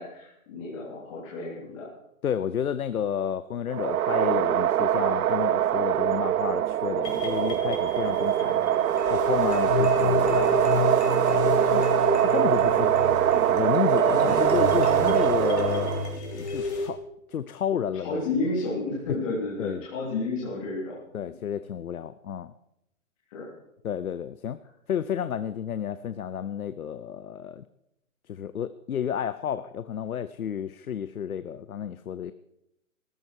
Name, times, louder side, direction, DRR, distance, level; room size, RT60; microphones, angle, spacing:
voice 1, 0.0-1.9 14.0-14.3 18.0-21.0 23.3-23.5, left 3 dB, 25° left, -6 dB, 3.4 m, -31 dB
voice 2, 2.2-8.6 9.1-11.9 12.2-13.0 13.5-15.9 16.3-17.0 17.3-18.2 19.1-19.2 19.6-19.8 21.1-22.5 23.8-24.6 24.9-27.6 28.3-32.3, left 9 dB, 80° left, 13 dB, 0.8 m, -31 dB
sound 1, 3.7-16.1, right 11 dB, 85° right, 0.5 m, -23 dB
sound 2, 7.0-16.9, left 4 dB, 50° left, 3.7 m, -30 dB
15.5 x 14.0 x 4.6 m, 0.84 s
hypercardioid pair, 170°, 42 cm